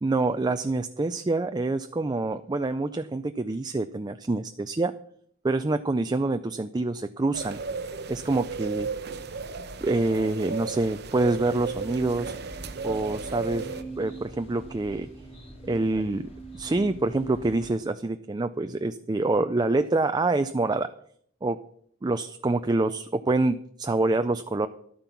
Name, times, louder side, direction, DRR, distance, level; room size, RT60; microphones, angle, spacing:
voice 1, 0.0-4.9 5.4-7.6 8.1-8.9 9.8-12.3 12.8-13.7 14.0-15.1 15.6-16.2 16.5-20.9 21.4-21.6 22.0-24.7, right 2 dB, 20° right, 9 dB, 0.4 m, -26 dB
sound 1, 7.3-13.8, right 4 dB, 60° right, 0.8 m, -35 dB
sound 2, 11.2-17.7, right 3 dB, 30° left, 3.0 m, -43 dB
11.5 x 9.0 x 5.9 m, 0.65 s
head